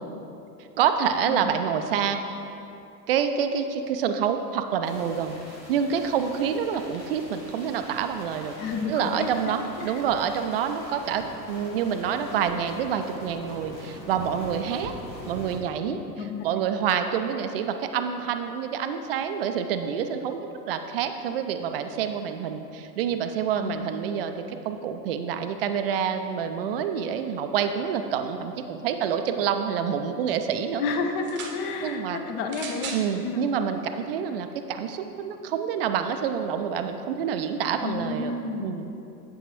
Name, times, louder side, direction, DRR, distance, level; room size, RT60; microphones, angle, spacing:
voice 1, 0.8-2.2 3.1-5.4 5.7-8.6 8.9-14.9 15.3-16.0 16.4-30.8 31.8-32.2 32.9-38.3 38.6-38.9, right 7 dB, 40° right, 7 dB, 0.4 m, -27 dB
sound 1, 4.8-15.6, left 1 dB, 90° left, 1.5 m, -42 dB
voice 2, 8.6-10.0 15.9-16.5 23.6-23.9 30.8-33.6 37.8-38.7, left 4 dB, 40° left, 4 dB, 0.8 m, -31 dB
sound 2, 31.2-31.6 32.5-33.1 34.0-34.1, right 5 dB, 20° right, 0.8 m, -37 dB
8.3 x 7.9 x 3.0 m, 2.8 s
figure-of-eight pair, 90°, 49 cm